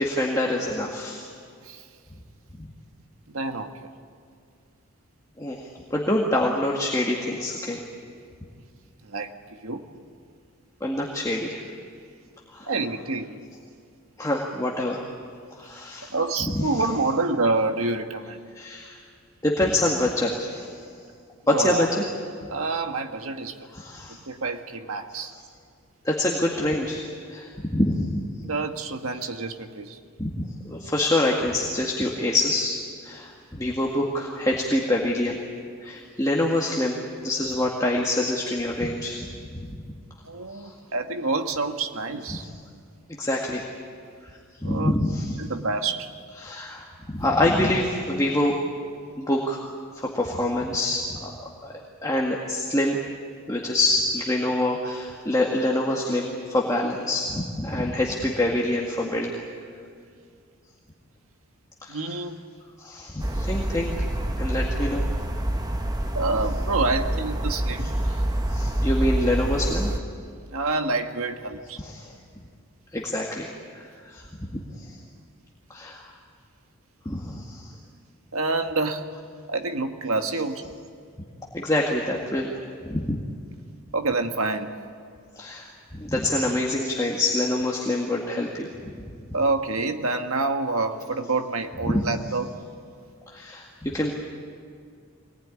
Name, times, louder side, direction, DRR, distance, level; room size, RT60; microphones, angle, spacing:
voice 1, 0.0-1.3 2.6-2.7 5.4-7.8 10.8-11.6 12.5-12.7 14.2-15.0 15.6-16.1 16.5-16.9 18.5-19.0 19.4-20.7 21.5-22.0 23.7-24.2 25.2-25.4 26.0-28.2 30.2-35.4 35.8-39.7 40.5-40.7 42.3-42.5 43.2-43.7 44.2-45.4 46.4-46.8 47.1-48.5 49.2-49.6 49.9-51.7 52.0-53.0 53.5-59.4 61.8-62.2 62.8-63.9 64.4-65.1 67.8-68.2 68.5-69.9 71.8-72.1 72.9-74.2 74.5-75.0 75.7-76.1 77.1-77.8 81.5-83.2 85.4-88.9 91.8-92.0 93.3-94.1, left 1 dB, 15° left, -2 dB, 1.8 m, -26 dB
voice 2, 3.3-3.7 9.0-9.8 12.7-13.4 16.1-18.4 21.5-21.9 22.5-23.6 24.3-25.3 28.4-30.0 40.3-42.5 44.6-45.0 45.4-46.1 61.9-62.4 66.2-68.0 70.5-71.8 78.3-79.1 79.5-80.7 83.9-84.8 89.3-92.6, right 3 dB, 70° right, 6 dB, 1.6 m, -27 dB
sound 1, 63.2-70.0, right 1 dB, 15° right, 1.0 m, -26 dB
24.5 x 19.5 x 9.9 m, 2.3 s
head